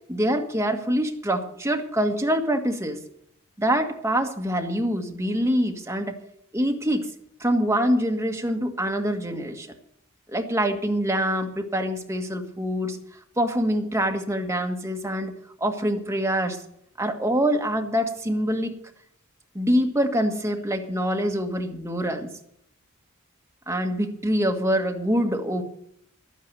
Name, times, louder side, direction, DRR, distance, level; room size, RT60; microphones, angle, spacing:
voice 1, 0.1-3.0 3.6-6.2 6.5-7.1 7.4-9.7 10.3-13.0 13.4-15.3 15.6-16.6 17.0-18.8 19.5-22.3 23.7-25.6, equal, 15° right, 3 dB, 1.6 m, -25 dB
12.0 x 9.3 x 8.0 m, 0.70 s
head